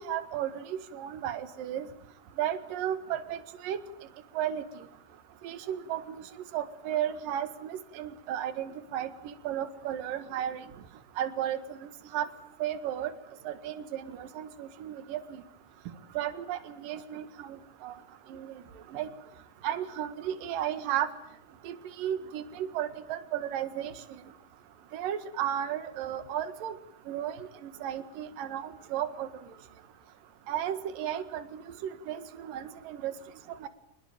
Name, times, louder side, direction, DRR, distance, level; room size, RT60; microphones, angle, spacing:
voice 1, 0.0-1.9 2.4-3.8 4.3-4.6 5.4-6.0 6.5-10.6 11.2-12.3 12.6-13.1 13.4-15.4 16.1-17.6 17.8-17.9 18.3-18.5 18.9-19.1 19.6-21.1 21.6-23.9 24.9-26.7 27.1-27.4 27.6-29.3 30.5-31.6 32.1-33.1 33.6-33.7, right 10 dB, 65° right, 11 dB, 3.2 m, -34 dB
26.5 x 20.5 x 9.1 m, 0.74 s
omnidirectional pair, 4.3 m